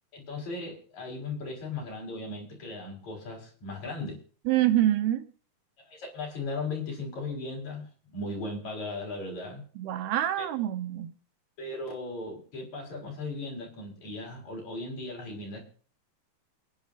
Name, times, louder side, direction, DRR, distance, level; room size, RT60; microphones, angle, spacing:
voice 1, 0.1-4.2 5.9-9.6 10.4-10.5 11.6-15.7, left 2 dB, 45° left, 5.4 m, -37 dB
voice 2, 4.5-5.3 9.8-11.1, right 13 dB, 80° right, 2.8 m, -26 dB
28.0 x 10.5 x 2.6 m
omnidirectional pair, 4.5 m